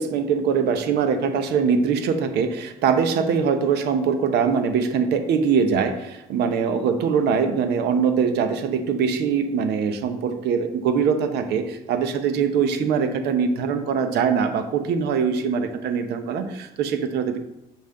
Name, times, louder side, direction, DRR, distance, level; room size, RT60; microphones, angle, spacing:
voice 1, 0.0-17.4, right 6 dB, 75° right, 8 dB, 0.9 m, -22 dB
7.2 x 5.5 x 3.8 m, 0.90 s
cardioid pair, 110°, 17 cm